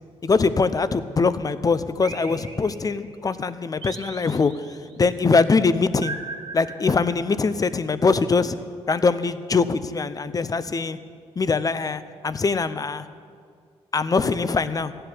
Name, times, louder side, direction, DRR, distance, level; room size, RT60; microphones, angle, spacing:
voice 1, 0.2-6.2 6.5-8.6 8.9-11.0 11.4-13.1 13.9-14.9, left 4 dB, 30° left, 13 dB, 0.7 m, -22 dB
sound 1, 2.0-3.1 3.8-4.9 6.0-7.5, right 4 dB, 45° right, 1.6 m, -38 dB
15.0 x 7.8 x 9.9 m, 2.1 s
cardioid pair, 90°, 12 cm